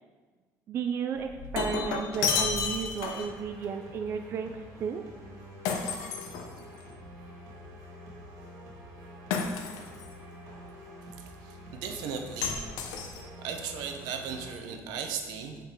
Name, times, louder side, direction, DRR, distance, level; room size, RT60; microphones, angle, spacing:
voice 1, 0.7-4.5 4.8-5.0, right 7 dB, 35° right, 6 dB, 0.4 m, -33 dB
Shatter, 1.2-3.4 5.7-6.9 9.3-10.1 12.4-13.5, left 6 dB, 80° left, 0.9 m, -32 dB
sound 1, 2.1-14.5, right 1 dB, 60° right, 1.9 m, -47 dB
voice 2, 11.2-12.6 13.0-15.6, right 6 dB, 85° right, 4 dB, 1.0 m, -37 dB
7.3 x 5.3 x 4.6 m, 1.4 s
cardioid pair, 165°, 7 cm